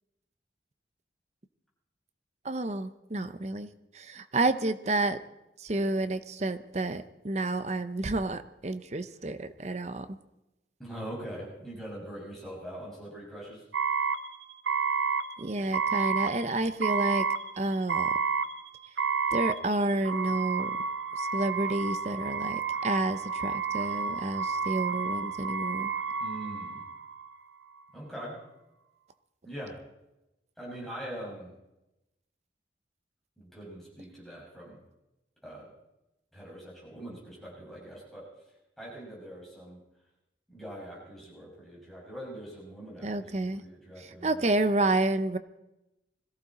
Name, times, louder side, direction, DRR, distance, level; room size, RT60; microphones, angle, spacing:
voice 1, 2.4-3.7 3.9-5.2 5.6-10.1 15.4-17.2 17.6-18.1 19.3-20.7 21.2-25.9 43.0-43.6 44.2-45.4, right 2 dB, 40° right, 12 dB, 0.7 m, -30 dB
voice 2, 10.8-13.6 26.2-26.8 27.9-28.4 29.4-29.8 30.6-31.5 33.4-34.8 35.4-35.7 36.3-38.3 38.8-39.8 40.5-44.4, right 1 dB, ahead, -5 dB, 6.0 m, -42 dB
sound 1, 13.7-27.3, right 5 dB, 85° right, 0.9 m, -30 dB
21.5 x 14.5 x 4.2 m, 0.94 s
head